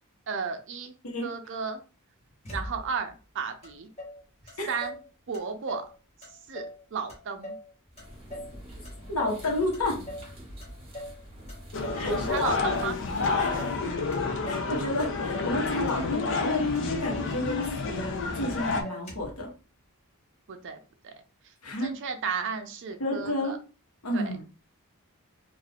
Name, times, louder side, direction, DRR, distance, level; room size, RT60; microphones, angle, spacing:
voice 1, 0.3-0.9 1.2-1.8 2.5-3.9 4.7-5.0 5.3-5.8 6.5-7.6 12.0-13.0 20.5-21.1 21.4-21.5 21.8-23.6 24.1-24.3, right 5 dB, 55° right, 7 dB, 0.5 m, -34 dB
Motor vehicle (road), 2.4-3.1 3.6-3.7 4.0-5.1 5.3-5.9 6.2-6.8 7.1-8.6 8.8-9.4 9.7-10.3 10.6-11.2 11.5-12.1 12.4-13.0 13.2-13.8 14.1-14.7 15.0-15.6 15.9-16.5 16.8-16.9 17.1-17.3 17.6-18.2 18.5-18.6 18.8-19.4, left 1 dB, 30° left, 1.0 m, -41 dB
sound 1, 7.9-13.9, equal, 25° right, 0.9 m, -46 dB
voice 2, 9.1-10.0 11.9-12.6 13.4-14.0 14.5-19.5 21.6-21.9 23.0-23.6 24.0-24.4, left 1 dB, 80° left, 0 dB, 1.0 m, -31 dB
sound 2, 11.7-18.8, left 4 dB, 55° left, 0.5 m, -29 dB
2.5 x 2.3 x 3.3 m, 0.35 s
head